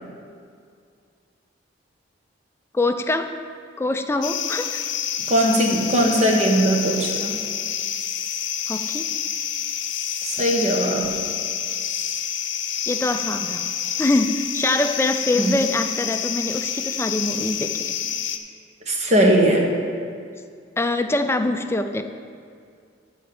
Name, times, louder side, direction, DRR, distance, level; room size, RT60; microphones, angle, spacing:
voice 1, 2.7-3.4 3.8-4.8 8.7-9.0 12.9-13.7 14.0-17.9 20.8-22.0, left 2 dB, 15° left, 7 dB, 0.4 m, -24 dB
sound 1, 4.2-18.4, left 9 dB, 85° left, 0.7 m, -28 dB
voice 2, 5.3-7.3 10.2-11.1 15.4-15.5 18.9-19.7, right 1 dB, 35° right, 1 dB, 1.3 m, -19 dB
13.0 x 4.4 x 7.0 m, 2.3 s
head